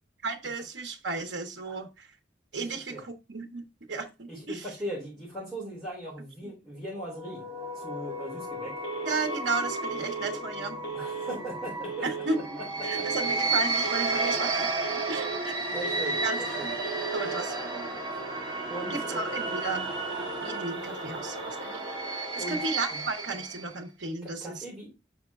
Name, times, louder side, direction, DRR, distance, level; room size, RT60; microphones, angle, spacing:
voice 1, 0.2-2.1 2.5-4.6 6.4-6.5 9.0-10.9 12.0-12.4 12.8-14.7 15.1-15.6 16.2-16.7 17.1-18.0 18.9-19.9 20.4-24.6, right 3 dB, 75° right, 4 dB, 1.1 m, -34 dB
voice 2, 2.6-3.0 4.3-7.5 7.7-8.8 10.9-12.1 12.6-13.0 15.7-16.7 18.7-19.3 22.3-22.6 22.9-23.0 24.2-24.9, right 1 dB, ahead, -9 dB, 3.4 m, -39 dB
sound 1, 7.0-23.8, right 2 dB, 25° right, 1.9 m, -33 dB
Telephone, 8.8-9.4 9.8-10.4 10.8-11.4 11.8-12.4 12.8-13.4 13.8-14.4 14.8-15.4 15.8-16.4 16.8-17.4, right 7 dB, 80° left, 1.2 m, -36 dB
6.2 x 5.1 x 3.5 m, 0.25 s
head